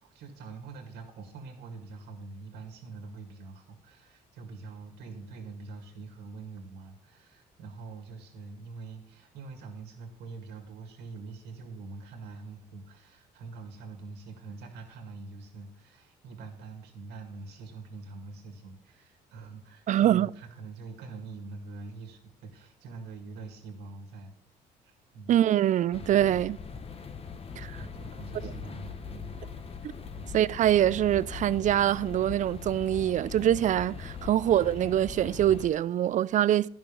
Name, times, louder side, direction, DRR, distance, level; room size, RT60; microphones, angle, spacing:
voice 1, 0.0-24.3 24.8-25.4 26.7-26.9 27.7-29.3 30.1-30.3, right 3 dB, 80° right, 2.1 m, -44 dB
voice 2, 19.9-20.3 25.3-26.6 27.6-27.8 30.3-36.7, right 11 dB, 50° right, 0.4 m, -24 dB
sound 1, 25.9-35.7, left 6 dB, 35° left, 1.0 m, -41 dB
11.0 x 6.1 x 5.2 m
supercardioid pair, 75°, 17 cm